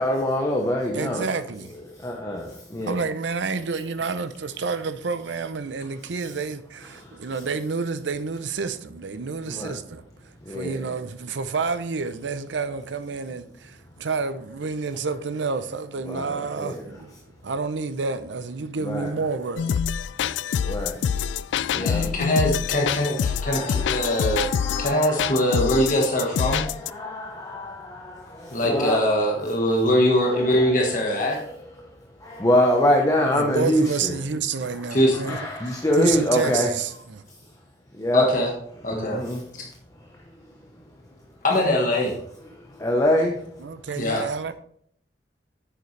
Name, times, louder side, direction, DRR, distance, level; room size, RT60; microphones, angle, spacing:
voice 1, 0.0-1.3 2.0-3.0 7.0-7.1 9.5-9.7 10.4-10.8 16.1-16.8 18.8-19.1 20.6-21.3 21.7-22.1 23.4-25.6 26.1-26.2 26.5-29.0 30.5-30.8 31.0-31.9 32.2-34.1 35.1-36.7 37.9-38.3 38.9-39.4 42.5-43.5, left 1 dB, 20° left, 0.9 m, -25 dB
voice 2, 0.9-1.9 2.8-17.1 17.4-19.8 21.6-22.2 33.3-35.5 36.0-37.2 43.6-44.5, right 4 dB, 90° right, 0.6 m, -29 dB
sound 1, 19.6-26.9, left 7 dB, 90° left, 0.3 m, -26 dB
voice 3, 21.8-24.5 24.8-26.6 28.5-31.4 34.9-35.3 38.1-38.5 38.8-39.2 41.4-42.2 44.0-44.3, equal, 45° left, 1.4 m, -22 dB
9.1 x 6.9 x 3.2 m
head